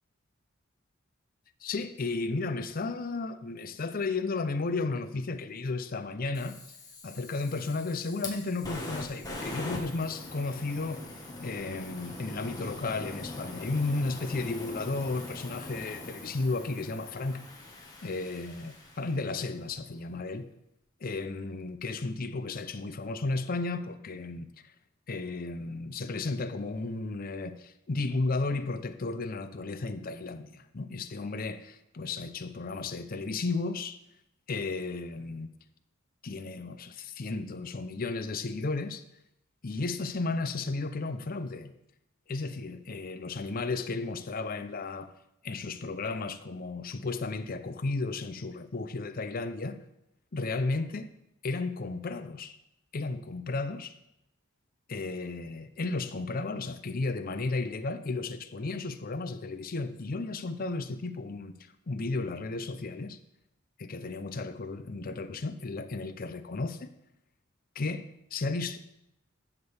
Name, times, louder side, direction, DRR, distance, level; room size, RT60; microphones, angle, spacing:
voice 1, 1.6-6.6 7.0-11.1 11.4-17.4 18.0-20.5 21.0-24.5 25.1-34.0 34.5-35.5 36.2-39.0 39.6-41.7 42.3-45.1 45.4-49.8 50.3-51.1 51.4-52.6 52.9-53.9 54.9-61.6 61.9-63.2 63.8-66.9 67.8-68.8, left 3 dB, 45° left, 0.6 m, -34 dB
Fire, 6.3-19.5, left 2 dB, 20° left, 1.5 m, -42 dB
12.0 x 7.2 x 3.4 m
head